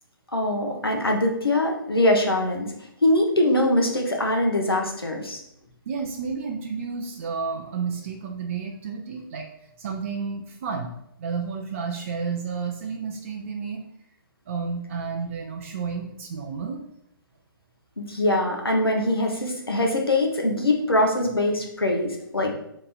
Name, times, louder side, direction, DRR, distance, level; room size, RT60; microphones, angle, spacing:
voice 1, 0.3-2.7 3.0-5.4 18.0-22.5, left 1 dB, 85° left, 1 dB, 0.7 m, -23 dB
voice 2, 5.9-9.5 9.8-10.9 11.2-13.8 14.5-16.9, right 5 dB, 35° right, 2 dB, 0.3 m, -31 dB
3.7 x 2.9 x 2.2 m, 0.77 s
figure-of-eight pair, 130°, 12 cm